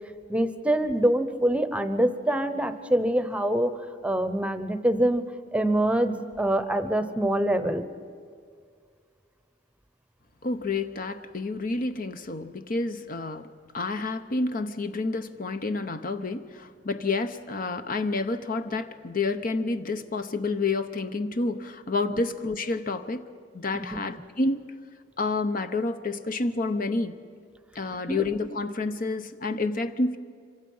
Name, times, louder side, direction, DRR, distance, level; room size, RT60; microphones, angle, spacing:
voice 1, 0.3-3.7 4.0-5.2 5.5-7.8 22.1-22.2 23.7-24.0 27.9-28.2, right 1 dB, 5° right, 11 dB, 0.9 m, -25 dB
voice 2, 10.4-23.2 23.5-24.7 25.2-27.2 27.7-30.2, left 3 dB, 50° left, 10 dB, 0.8 m, -29 dB
26.5 x 24.5 x 5.6 m, 2.1 s
head